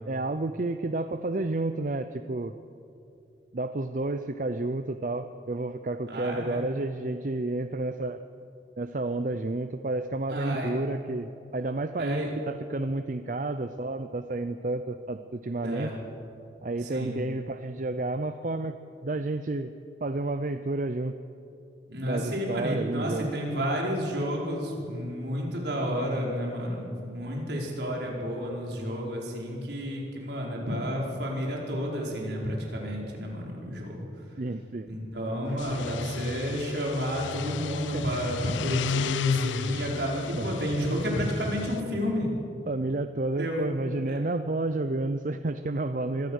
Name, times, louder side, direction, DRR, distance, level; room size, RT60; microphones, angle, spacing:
voice 1, 0.1-2.5 3.5-8.2 8.8-15.9 16.6-18.8 19.0-19.7 20.0-21.1 22.0-23.3 34.4-34.9 37.9-38.0 40.0-40.1 40.4-40.5 42.7-46.3, right 2 dB, 45° right, 10 dB, 0.6 m, -31 dB
voice 2, 6.1-6.6 10.3-10.7 12.0-12.3 15.6-15.9 16.8-17.1 21.9-34.1 34.9-42.3 43.4-43.6 44.1-44.2, equal, 70° right, -2 dB, 4.9 m, -31 dB
sound 1, 35.5-41.8, left 6 dB, 85° left, 0.4 m, -33 dB
25.0 x 18.0 x 6.5 m, 2.7 s
head